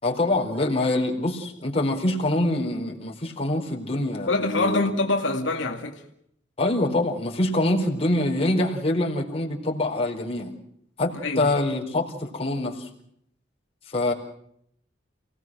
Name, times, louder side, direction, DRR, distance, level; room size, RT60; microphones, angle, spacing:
voice 1, 0.0-4.8 6.6-10.5 11.0-12.9 13.9-14.1, left 1 dB, 30° left, 4.4 m, -25 dB
voice 2, 4.3-6.0 11.2-11.5, left 2 dB, 75° left, 2.3 m, -25 dB
29.0 x 19.0 x 6.2 m
head